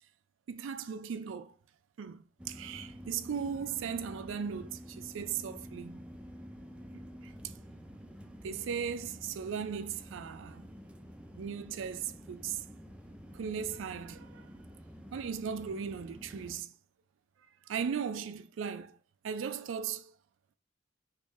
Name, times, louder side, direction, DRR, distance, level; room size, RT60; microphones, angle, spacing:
voice 1, 0.5-1.5 2.0-4.7 5.0-6.0 6.9-7.3 8.4-10.7 11.4-12.6 13.3-14.4 15.1-16.7 17.7-18.9 19.2-20.1, right 7 dB, 80° right, 0.4 m, -37 dB
sound 1, 2.4-16.6, equal, 5° right, 0.3 m, -49 dB
3.6 x 2.6 x 3.0 m
head